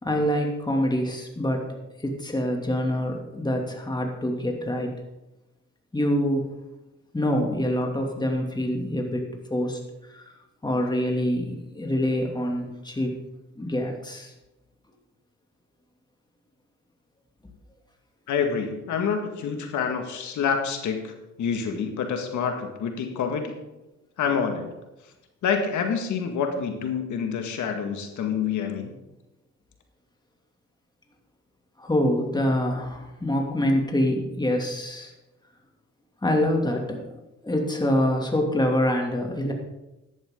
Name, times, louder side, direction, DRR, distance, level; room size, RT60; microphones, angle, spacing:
voice 1, 0.0-4.9 5.9-6.5 7.1-9.2 9.5-9.8 10.1-10.3 10.6-13.2 13.6-14.3 31.8-35.1 36.2-37.0 37.4-39.5, left 1 dB, 15° left, 1 dB, 2.6 m, -25 dB
voice 2, 18.3-23.5 24.2-24.7 25.4-28.9, left 6 dB, 75° left, 4 dB, 1.9 m, -27 dB
14.0 x 11.0 x 3.8 m, 0.99 s
cardioid pair, 90°, 30 cm